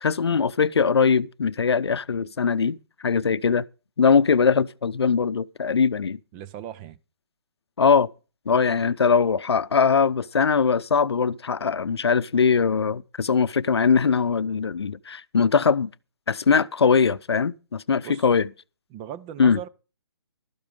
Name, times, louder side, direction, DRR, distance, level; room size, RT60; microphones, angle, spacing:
voice 1, 0.0-2.8 3.0-3.6 4.0-6.2 7.8-8.1 8.5-15.9 16.3-18.5 19.4-19.6, left 5 dB, 85° left, 0.6 m, -21 dB
voice 2, 6.3-7.0 18.0-18.3 18.9-19.7, right 10 dB, 20° right, 0.5 m, -37 dB
13.0 x 9.1 x 5.2 m
hypercardioid pair, 145°, 13 cm